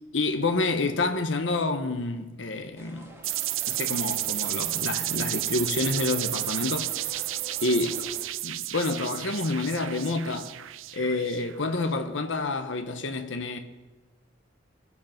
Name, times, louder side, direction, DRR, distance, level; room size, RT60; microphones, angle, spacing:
voice 1, 0.1-3.2 3.7-7.2 7.6-8.1 8.4-10.5 10.9-13.6, left 3 dB, 70° left, 1.0 m, -28 dB
sound 1, 2.8-8.3, right 1 dB, 15° right, 2.0 m, -48 dB
sound 2, 3.2-11.8, right 16 dB, 90° right, 0.5 m, -32 dB
24.0 x 8.3 x 5.8 m
head